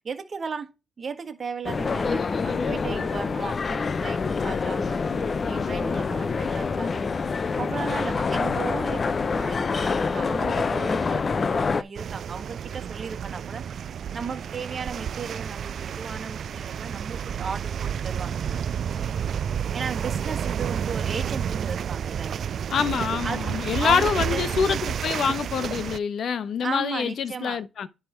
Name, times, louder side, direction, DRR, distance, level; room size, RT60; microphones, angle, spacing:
voice 1, 0.0-0.7 1.0-7.3 7.6-13.6 14.1-18.4 19.7-22.4 23.2-23.4 23.8-24.5 26.6-27.6, right 5 dB, 40° right, 1.4 m, -35 dB
sound 1, 1.6-11.8, left 4 dB, 35° left, 0.6 m, -26 dB
sound 2, 11.9-26.0, right 8 dB, 60° right, 0.3 m, -30 dB
voice 2, 22.7-27.9, left 7 dB, 60° left, 1.0 m, -26 dB
10.5 x 3.5 x 4.5 m
cardioid pair, 90°, 0 cm